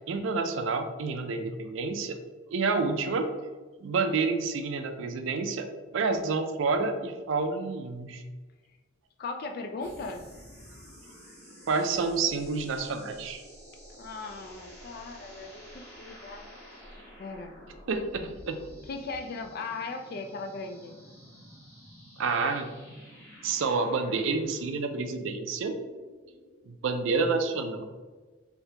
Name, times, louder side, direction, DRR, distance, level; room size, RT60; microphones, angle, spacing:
voice 1, 0.1-2.2 2.5-3.3 3.8-5.7 5.9-8.2 11.7-13.4 17.9-18.6 22.2-22.7 23.4-25.7 26.7-27.8, right 4 dB, 70° right, 7 dB, 0.4 m, -29 dB
voice 2, 9.2-10.3 14.0-16.4 17.2-17.6 18.9-21.0, left 3 dB, 50° left, 5 dB, 0.3 m, -38 dB
sound 1, 9.8-26.6, equal, 15° left, 1.4 m, -50 dB
3.4 x 2.6 x 2.8 m, 1.3 s
head